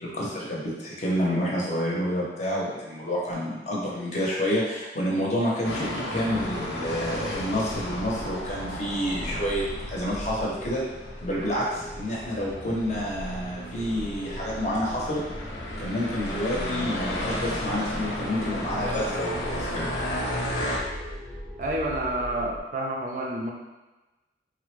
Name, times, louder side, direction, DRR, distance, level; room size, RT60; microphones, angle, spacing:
voice 1, 0.0-10.8 11.2-15.2 15.8-19.9, equal, 40° left, -4 dB, 0.7 m, -29 dB
sound 1, 5.6-20.8, left 1 dB, 85° left, 0.6 m, -34 dB
sound 2, 6.2-22.6, equal, ahead, 0.6 m, -39 dB
voice 2, 21.6-23.5, right 1 dB, 45° right, -1 dB, 0.4 m, -29 dB
3.5 x 2.0 x 3.1 m, 1.1 s
head